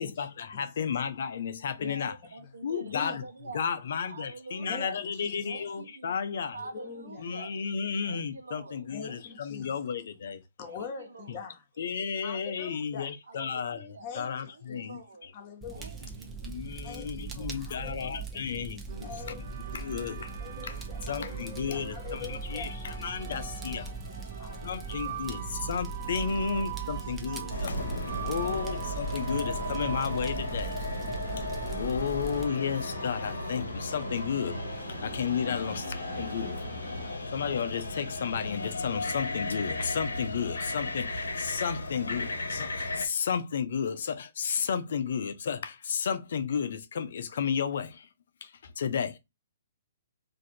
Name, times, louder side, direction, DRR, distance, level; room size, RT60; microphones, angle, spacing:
voice 1, 0.0-2.1 2.6-3.2 3.5-6.5 7.2-10.4 11.3-11.4 11.8-13.8 14.1-15.0 16.4-18.8 19.7-20.3 21.1-23.8 24.6-25.4 25.7-27.7 28.3-30.7 31.8-34.6 35.0-35.8 36.2-36.6 37.3-41.1 41.4-42.7 43.0-47.9 48.8-49.2, left 7 dB, 65° left, 0.6 m, -32 dB
voice 2, 0.5-0.9 1.8-2.0 2.4-2.5 2.9-3.2 4.6-5.5 6.6-7.3 8.9-9.8 10.6-11.6 12.2-13.1 14.0-14.9 15.3-16.0 16.8-18.4 19.0-19.4 20.4-22.7 23.2-23.9 24.3-25.2 26.1-26.4 28.1-28.5, left 6 dB, 40° left, 1.0 m, -44 dB
voice 3, 1.8-5.0 5.4-7.6 8.0-9.6 10.6-11.5 13.3-14.1 14.4-15.3 15.7-16.5, right 3 dB, 80° right, 0.8 m, -46 dB
Fire, 15.6-32.4, right 5 dB, 15° right, 0.6 m, -40 dB
sound 1, 18.9-37.2, right 7 dB, 55° right, 0.9 m, -42 dB
sound 2, 27.5-43.1, left 2 dB, 90° left, 0.9 m, -35 dB
2.7 x 2.5 x 4.2 m
hypercardioid pair, 135°, 0 cm